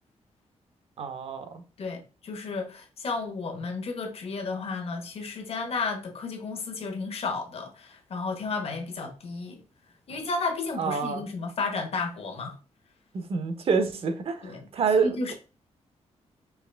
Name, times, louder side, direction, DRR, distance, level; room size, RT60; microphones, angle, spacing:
voice 1, 1.0-1.6 10.8-11.3 13.1-15.3, right 5 dB, 50° right, 0.8 m, -27 dB
voice 2, 1.8-9.6 10.1-12.6 14.4-14.6 15.0-15.3, left 4 dB, 55° left, 1.1 m, -33 dB
4.7 x 3.0 x 3.3 m
wide cardioid pair, 160°, 12 cm